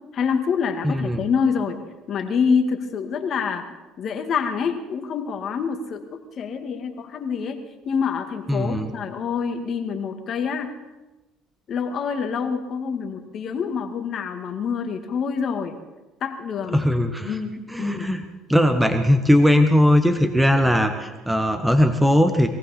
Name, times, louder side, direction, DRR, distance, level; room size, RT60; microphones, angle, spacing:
voice 1, 0.1-1.8 2.1-6.1 6.3-10.7 11.7-15.8 16.2-16.8 17.2-18.1, left 6 dB, 50° left, 6 dB, 1.9 m, -26 dB
voice 2, 0.8-1.2 8.5-8.9 16.7-17.3 17.7-18.2 18.5-22.5, left 1 dB, 5° right, 7 dB, 1.3 m, -19 dB
21.5 x 15.0 x 4.3 m, 1.1 s
supercardioid pair, 95°, 0 cm